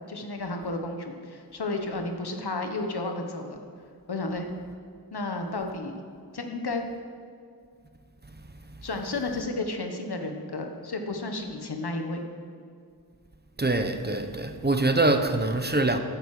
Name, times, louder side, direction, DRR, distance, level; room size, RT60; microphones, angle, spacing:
voice 1, 0.1-3.6 4.1-4.5 5.1-6.0 6.3-6.8 8.8-12.2, left 2 dB, 80° left, 1.3 m, -32 dB
voice 2, 13.6-16.0, right 2 dB, 25° right, 0.9 m, -24 dB
14.5 x 9.0 x 4.9 m
wide cardioid pair, 70°, 38 cm